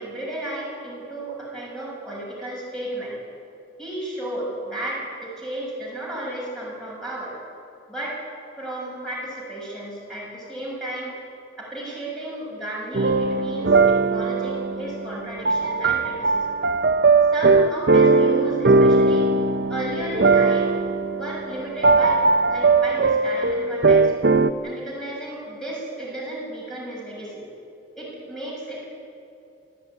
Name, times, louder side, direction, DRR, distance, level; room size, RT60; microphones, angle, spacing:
voice 1, 0.0-3.2 3.8-7.3 7.9-8.2 8.6-11.2 11.6-16.5 17.3-19.3 19.7-20.7 21.1-22.2 22.5-24.1 24.6-27.5 28.0-28.9, right 1 dB, 5° left, -5 dB, 6.9 m, -33 dB
sound 1, 12.9-24.5, right 3 dB, 60° right, 0.8 m, -19 dB
27.5 x 14.0 x 9.7 m, 2.6 s
head